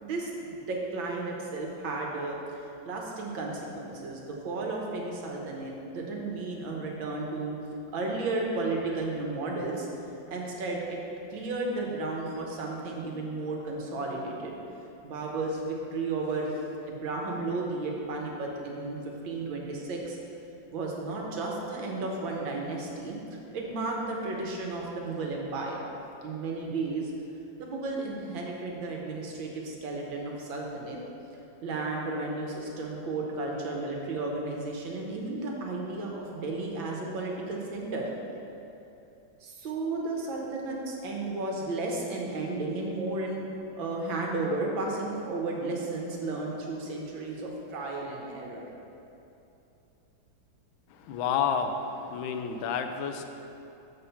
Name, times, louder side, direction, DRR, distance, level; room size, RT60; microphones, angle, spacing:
voice 1, 0.0-7.5 7.9-9.9 10.3-11.0 11.3-14.5 15.0-16.6 16.8-19.0 19.2-20.2 20.7-25.9 26.2-27.1 27.6-31.0 31.6-38.1 39.4-43.5 43.7-48.6, right 3 dB, 80° right, -1 dB, 1.8 m, -33 dB
voice 2, 51.1-51.7 52.1-53.3, left 7 dB, 85° left, 6 dB, 1.4 m, -29 dB
6.9 x 4.7 x 5.7 m, 2.9 s
omnidirectional pair, 2.1 m